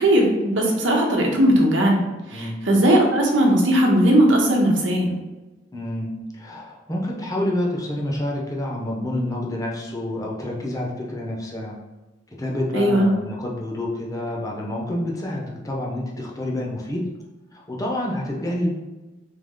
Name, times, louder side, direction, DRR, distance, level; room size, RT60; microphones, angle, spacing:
voice 1, 0.0-5.1 12.7-13.1, right 1 dB, 90° right, 0 dB, 0.9 m, -18 dB
voice 2, 5.7-11.8 12.4-17.0 17.5-18.7, left 1 dB, 20° left, -2 dB, 0.8 m, -28 dB
3.6 x 3.0 x 3.7 m, 1.1 s
head